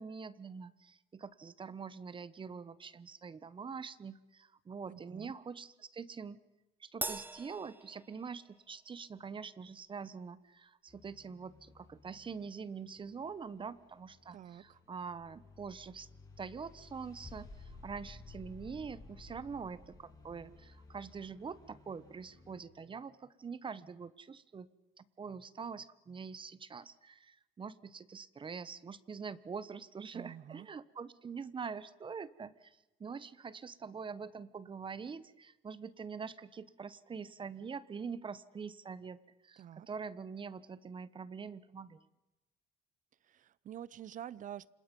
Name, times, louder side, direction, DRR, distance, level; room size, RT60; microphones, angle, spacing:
voice 1, 0.0-6.4 6.8-16.1 16.4-24.7 25.0-39.2 39.4-42.0, right 5 dB, 30° right, 16 dB, 1.2 m, -45 dB
voice 2, 4.9-5.3 14.3-14.8 30.1-30.7 39.6-39.9 43.2-44.7, right 10 dB, 50° right, 21 dB, 0.8 m, -48 dB
Crash cymbal, 7.0-8.7, right 2 dB, 10° right, 0.7 m, -42 dB
sound 1, 10.9-22.6, left 3 dB, 25° left, 6.5 m, -56 dB
29.5 x 27.0 x 5.4 m, 1.0 s
cardioid pair, 110°, 17 cm